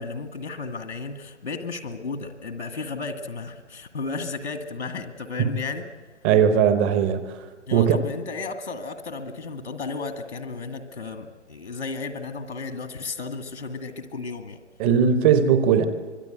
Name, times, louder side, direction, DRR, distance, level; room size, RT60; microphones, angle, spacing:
voice 1, 0.0-5.9 7.7-14.6, left 4 dB, 75° left, 7 dB, 2.2 m, -33 dB
voice 2, 6.2-7.2 7.7-8.0 14.8-15.9, right 7 dB, 10° right, 11 dB, 0.6 m, -18 dB
25.0 x 22.5 x 8.0 m, 1.4 s
figure-of-eight pair, 145°, 34 cm